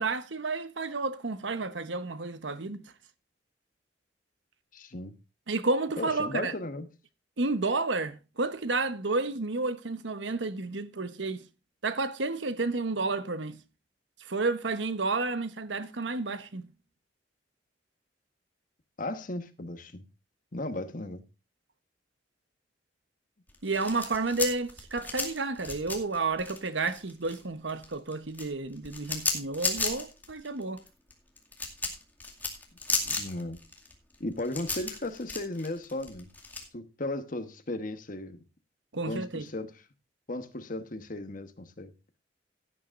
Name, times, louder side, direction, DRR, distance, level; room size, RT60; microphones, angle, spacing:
voice 1, 0.0-2.8 5.5-6.5 7.4-11.4 11.8-13.6 14.2-16.7 23.6-30.8 38.9-39.4, right 3 dB, 85° right, 1.1 m, -31 dB
voice 2, 4.7-5.2 6.0-6.9 19.0-20.1 20.5-21.2 33.0-33.6 34.2-36.3 36.7-38.4 39.0-39.8 40.3-41.9, left 2 dB, 45° left, 1.2 m, -36 dB
sound 1, 23.5-27.4 27.7-36.6, left 3 dB, 10° left, 2.2 m, -34 dB
16.5 x 10.0 x 2.5 m
head